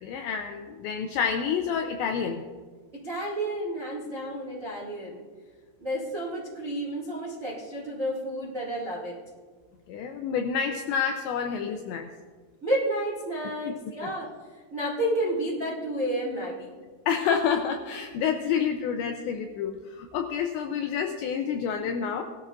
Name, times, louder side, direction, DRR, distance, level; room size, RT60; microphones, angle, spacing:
voice 1, 0.0-2.4 9.9-12.1 14.0-14.1 17.1-22.2, left 7 dB, 85° left, 4 dB, 2.6 m, -28 dB
voice 2, 2.9-5.2 5.8-9.1 12.6-14.3 14.7-16.7, right 1 dB, 75° right, -5 dB, 0.7 m, -31 dB
19.5 x 13.0 x 2.5 m, 1.5 s
omnidirectional pair, 6.0 m